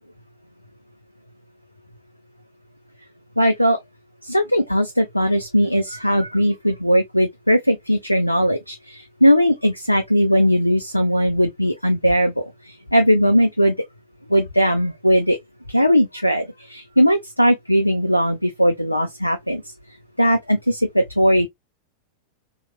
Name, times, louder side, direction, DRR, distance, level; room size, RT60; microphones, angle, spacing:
voice 1, 3.4-3.8 4.2-13.7 14.3-15.4 15.7-19.6 20.2-21.5, equal, 90° left, 0.3 m, -19 dB
2.8 x 2.1 x 2.2 m
figure-of-eight pair, 90°, 0 cm